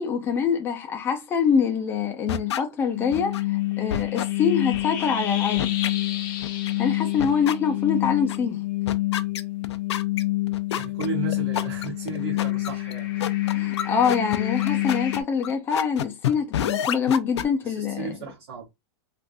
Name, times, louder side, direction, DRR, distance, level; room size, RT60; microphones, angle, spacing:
voice 1, 0.0-3.4 3.8-5.8 6.8-8.6 13.5-18.1, left 6 dB, 15° left, 0.5 m, -24 dB
sound 1, 2.3-2.6 3.1-3.4 3.9-4.3 4.7-5.1 5.6-5.9 6.4-6.7 7.2-7.5 8.0-8.4 8.9-17.4, left 10 dB, 90° left, 0.5 m, -29 dB
sound 2, 2.9-15.2, left 17 dB, 50° left, 0.7 m, -27 dB
voice 2, 10.7-13.7 17.6-18.7, right 6 dB, 55° right, 1.2 m, -36 dB
3.4 x 2.5 x 2.6 m
supercardioid pair, 160°, 14 cm